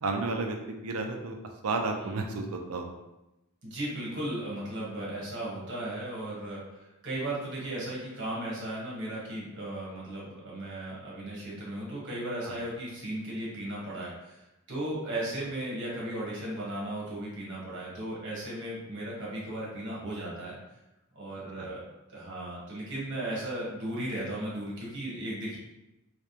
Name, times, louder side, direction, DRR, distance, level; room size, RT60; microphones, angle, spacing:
voice 1, 0.0-0.6 0.8-1.4 1.6-2.9 12.4-12.6 15.0-15.1 21.6-21.7, right 3 dB, 80° right, 3 dB, 0.5 m, -32 dB
voice 2, 3.6-6.6 7.0-14.4 14.7-20.6 21.1-25.6, right 1 dB, 60° right, -5 dB, 1.3 m, -36 dB
3.4 x 2.9 x 2.8 m, 0.95 s
head